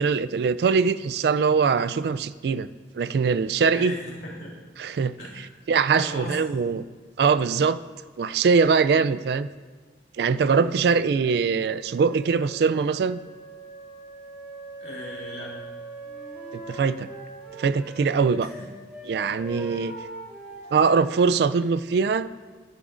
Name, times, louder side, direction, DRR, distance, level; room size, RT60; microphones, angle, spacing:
voice 1, 0.0-2.7 2.9-3.9 4.8-5.1 5.7-6.8 7.2-7.8 8.2-9.5 10.2-13.2 16.5-17.1 17.6-18.5 19.1-19.9 20.7-22.3, right 5 dB, 60° right, 14 dB, 0.3 m, -22 dB
voice 2, 3.6-4.5 5.2-5.4 5.9-6.5 14.8-15.6 18.4-18.7, left 1 dB, 60° left, -3 dB, 3.0 m, -37 dB
Wind instrument woodwind instrument, 11.0-18.7, right 4 dB, 85° left, 1.5 m, -43 dB
Wind instrument woodwind instrument 2, 16.0-18.6 18.9-21.7, equal, 10° right, 2.8 m, -42 dB
13.5 x 11.0 x 2.5 m, 1.4 s
head